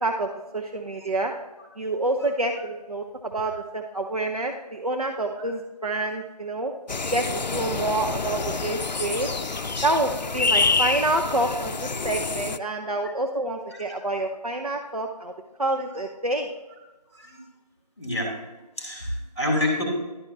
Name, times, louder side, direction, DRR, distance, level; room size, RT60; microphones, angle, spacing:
voice 1, 0.0-1.3 1.8-6.7 7.1-9.3 9.8-15.3 15.6-16.5, right 2 dB, 60° right, 3 dB, 0.7 m, -27 dB
sound 1, 6.9-12.6, left 4 dB, 85° left, 0.5 m, -27 dB
voice 2, 12.8-13.1 13.7-13.8 17.1-17.4 18.0-18.3 18.8-19.8, left 1 dB, 20° left, -1 dB, 2.3 m, -28 dB
12.0 x 4.4 x 2.6 m, 1.1 s
figure-of-eight pair, 175°, 21 cm